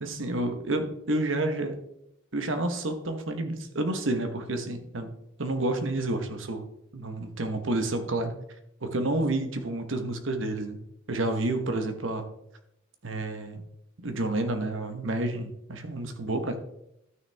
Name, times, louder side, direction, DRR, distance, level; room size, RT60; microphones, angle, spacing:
voice 1, 0.0-1.7 2.3-5.1 5.4-6.6 6.9-8.3 8.8-10.8 11.1-12.3 13.0-13.6 14.0-16.6, right 2 dB, 75° right, 7 dB, 1.1 m, -29 dB
12.5 x 6.2 x 3.5 m, 0.80 s
head